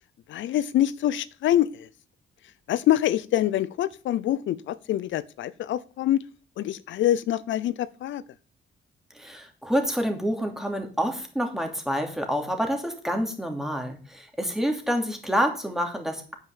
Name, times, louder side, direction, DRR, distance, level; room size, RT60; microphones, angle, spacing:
voice 1, 0.3-1.9 2.7-6.2 6.6-8.2, left 12 dB, 70° left, 16 dB, 0.6 m, -25 dB
voice 2, 9.1-16.3, equal, ahead, 3 dB, 2.7 m, -28 dB
9.2 x 5.7 x 7.2 m, 0.39 s
cardioid pair, 90°, 20 cm